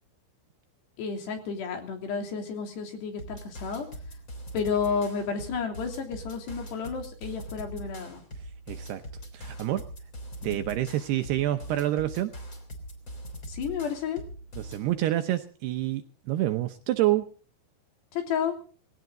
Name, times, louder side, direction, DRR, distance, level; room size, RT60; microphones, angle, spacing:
voice 1, 1.0-3.9 4.5-8.2 10.4-10.6 13.5-14.2 18.1-18.6, left 6 dB, 65° left, 4 dB, 5.0 m, -31 dB
sound 1, 3.2-14.9, right 1 dB, 20° left, 3.1 m, -42 dB
voice 2, 8.7-9.0 9.3-9.8 10.4-12.3 14.6-17.3, right 14 dB, 75° right, 8 dB, 2.6 m, -27 dB
20.0 x 17.0 x 3.9 m, 0.41 s
omnidirectional pair, 5.4 m